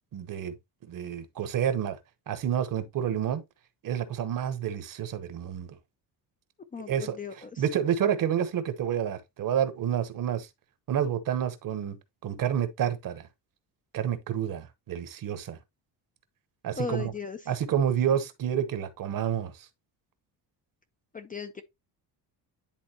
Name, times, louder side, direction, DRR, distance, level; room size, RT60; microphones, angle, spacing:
voice 1, 0.1-0.5 0.9-2.0 2.3-3.4 3.8-5.8 6.9-7.2 7.6-10.5 10.9-12.0 12.2-13.3 13.9-15.6 16.6-17.1 17.5-19.7, right 9 dB, 50° right, 1.0 m, -29 dB
voice 2, 6.7-7.6 16.8-17.4 21.1-21.6, left 5 dB, 20° left, 0.4 m, -36 dB
10.0 x 3.5 x 2.8 m
cardioid pair, 155°, 42 cm